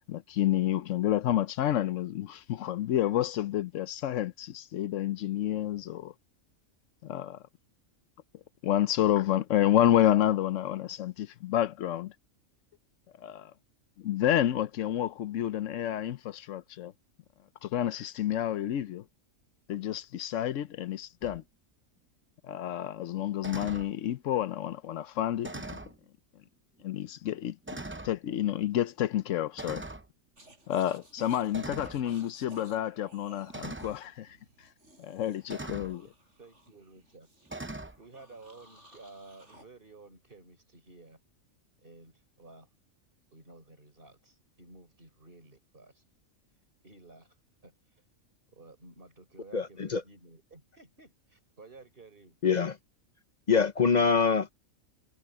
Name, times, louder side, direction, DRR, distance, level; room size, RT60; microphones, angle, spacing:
voice 1, 0.1-6.1 7.0-7.4 8.6-12.1 13.2-13.5 14.0-16.9 17.6-19.0 19.7-21.4 22.4-25.6 26.8-27.6 28.0-29.9 30.7-34.3 35.0-36.0, left 12 dB, 75° left, 1.0 m, -29 dB
sound 1, 21.2-21.4 23.4-23.9 25.4-26.0 26.8-26.9 27.7-28.2 29.6-30.1 31.5-32.0 33.5-34.0 35.5-36.0 37.5-38.0, right 2 dB, 15° right, 0.4 m, -40 dB
sound 2, 30.4-39.6, right 1 dB, 60° right, 8.3 m, -56 dB
voice 2, 35.7-36.1 36.4-37.3 38.0-41.2 41.8-42.7 43.3-46.0 46.8-47.4 47.6-47.7 48.5-52.4, right 3 dB, 40° right, 4.9 m, -53 dB
voice 3, 49.5-50.0 52.4-52.8 53.5-54.5, left 5 dB, 40° left, 0.7 m, -24 dB
omnidirectional pair, 1.4 m